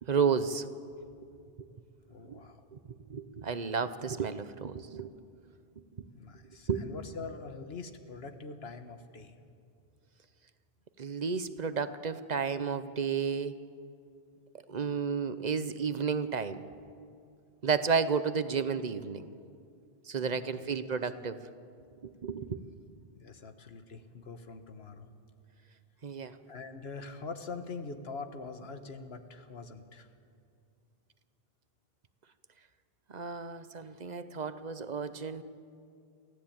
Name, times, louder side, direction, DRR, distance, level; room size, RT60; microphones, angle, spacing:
voice 1, 0.0-0.6 1.6-1.7 2.2-2.4 2.7-2.8 3.1-5.1 5.9-6.0 6.7-6.9 11.0-13.5 14.7-16.6 17.6-19.3 20.1-21.4 22.0-22.6 26.0-26.4 33.1-35.4, right 6 dB, 45° right, 12 dB, 0.9 m, -32 dB
voice 2, 2.1-2.6 6.1-9.4 20.2-20.8 23.1-25.1 26.5-30.1, left 4 dB, 85° left, 8 dB, 1.6 m, -44 dB
23.5 x 15.5 x 8.7 m, 2.4 s
omnidirectional pair, 1.0 m